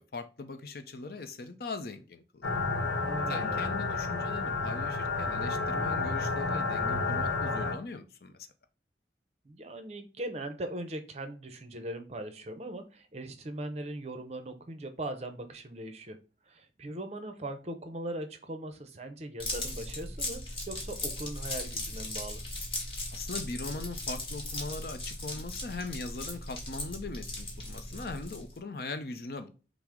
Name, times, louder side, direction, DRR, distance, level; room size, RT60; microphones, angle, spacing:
voice 1, 0.0-2.5 3.3-8.4 23.1-29.5, left 3 dB, 55° left, 0.5 m, -40 dB
sound 1, 2.4-7.8, left 3 dB, 85° left, 0.8 m, -31 dB
voice 2, 3.0-3.7 9.5-16.2 16.5-22.4, right 1 dB, 35° right, 0.6 m, -40 dB
sound 2, 19.4-28.6, left 2 dB, 30° left, 1.3 m, -38 dB
5.9 x 2.1 x 3.6 m
head